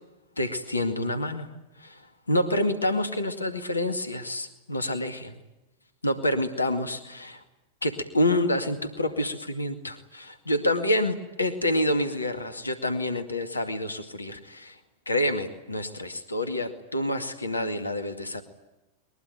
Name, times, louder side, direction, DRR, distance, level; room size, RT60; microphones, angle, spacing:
voice 1, 0.4-1.5 1.8-2.0 2.3-5.3 6.0-7.4 7.8-14.8 15.1-18.4, left 1 dB, 80° left, 8 dB, 2.1 m, -27 dB
22.0 x 22.0 x 9.4 m, 0.97 s
figure-of-eight pair, 90°, 0 cm